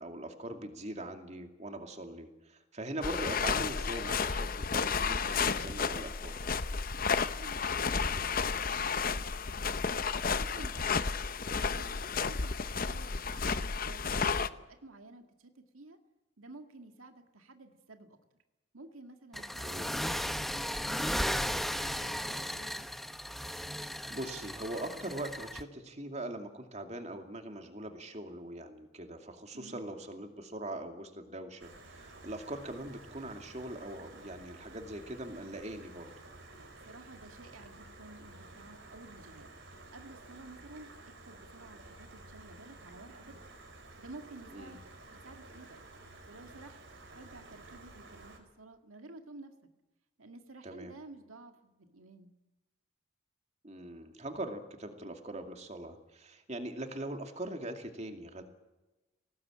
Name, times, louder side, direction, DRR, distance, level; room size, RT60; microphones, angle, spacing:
voice 1, 0.0-6.4 19.6-19.9 24.1-36.1 44.5-44.8 50.6-50.9 53.6-58.4, right 1 dB, 30° right, 5 dB, 2.5 m, -41 dB
sound 1, 3.0-14.5, left 5 dB, 40° left, 0.7 m, -32 dB
voice 2, 7.0-8.1 8.4-9.9 10.3-11.0 11.8-12.5 12.8-16.0 16.4-18.2 18.7-22.7 29.5-29.9 36.9-39.5 39.9-43.4 44.0-44.8 45.1-45.8 46.3-46.8 47.1-49.5 50.2-52.3, right 2 dB, 85° right, 5 dB, 2.0 m, -52 dB
sound 2, 19.3-25.6, equal, ahead, 0.8 m, -35 dB
Stream, 31.6-48.4, right 2 dB, 60° right, 4.5 m, -52 dB
22.0 x 18.5 x 8.8 m, 1.1 s
head